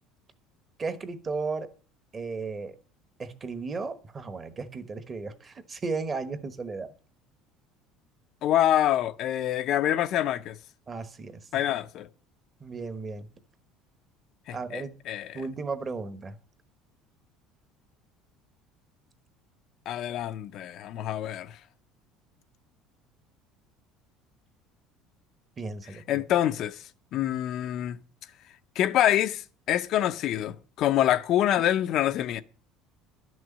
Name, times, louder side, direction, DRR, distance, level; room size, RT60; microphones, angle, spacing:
voice 1, 0.8-1.7 2.1-2.8 3.2-6.9 10.9-11.4 12.6-13.3 14.5-15.0 15.3-16.4 25.6-26.2, right 4 dB, 20° right, 1.1 m, -35 dB
voice 2, 8.4-10.6 11.5-12.1 14.5-15.4 19.9-21.6 26.1-26.8 27.1-28.0 28.8-32.4, left 12 dB, 45° left, 0.6 m, -26 dB
12.0 x 6.2 x 8.4 m
cardioid pair, 155°, 0 cm